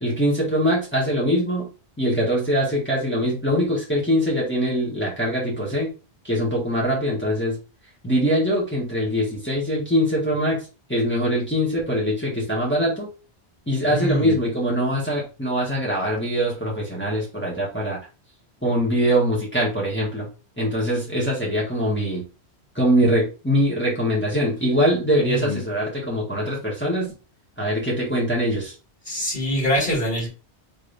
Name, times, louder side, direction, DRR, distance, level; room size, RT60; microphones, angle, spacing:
voice 1, 0.0-1.7 2.0-5.9 6.2-7.6 8.0-10.6 10.9-13.1 13.7-18.0 18.6-20.3 20.6-22.2 22.8-27.1 27.6-28.7, equal, 10° left, -5 dB, 1.7 m, -23 dB
voice 2, 13.8-14.4 25.2-25.6 29.0-30.3, equal, 50° left, -8 dB, 2.9 m, -24 dB
4.0 x 3.7 x 3.4 m, 0.32 s
omnidirectional pair, 1.2 m